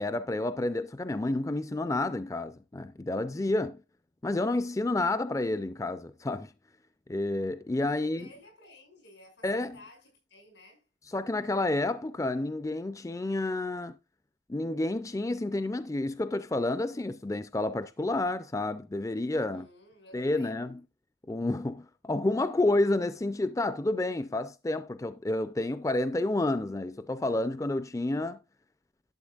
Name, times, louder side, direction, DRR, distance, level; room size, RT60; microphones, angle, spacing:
voice 1, 0.0-3.8 4.2-6.5 7.1-8.3 9.4-9.8 11.1-14.0 14.5-19.7 20.1-20.8 21.3-28.4, left 2 dB, 20° left, 0.4 m, -30 dB
voice 2, 7.8-10.8 19.3-20.6, left 1 dB, 85° left, 6.0 m, -55 dB
12.0 x 7.8 x 2.4 m
head